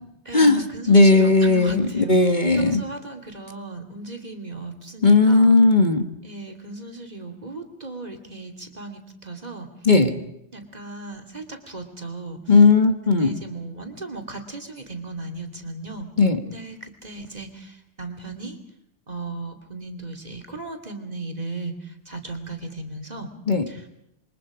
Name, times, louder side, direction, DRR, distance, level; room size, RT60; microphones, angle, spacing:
voice 1, 0.2-5.6 6.2-9.7 10.5-12.5 13.1-16.1 16.4-18.6 19.1-23.3 23.7-23.9, right 3 dB, 35° right, 5 dB, 2.8 m, -36 dB
voice 2, 0.9-2.8 5.0-6.1 9.9-10.1 12.5-13.4 16.2-16.4 23.5-23.6, left 3 dB, 40° left, 6 dB, 1.8 m, -16 dB
27.5 x 23.5 x 5.0 m, 0.80 s
omnidirectional pair, 1.2 m